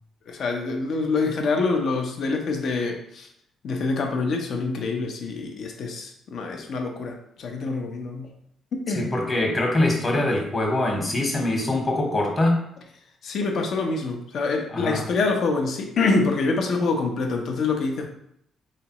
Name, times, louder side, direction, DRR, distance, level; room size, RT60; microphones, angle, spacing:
voice 1, 0.3-3.3 3.6-8.3 8.7-9.2 13.2-18.1, left 3 dB, 65° left, 2 dB, 0.7 m, -26 dB
voice 2, 8.9-12.6 14.7-15.0, left 1 dB, 30° left, 1 dB, 1.1 m, -23 dB
4.0 x 3.3 x 3.0 m, 0.73 s
cardioid pair, 90°, 0 cm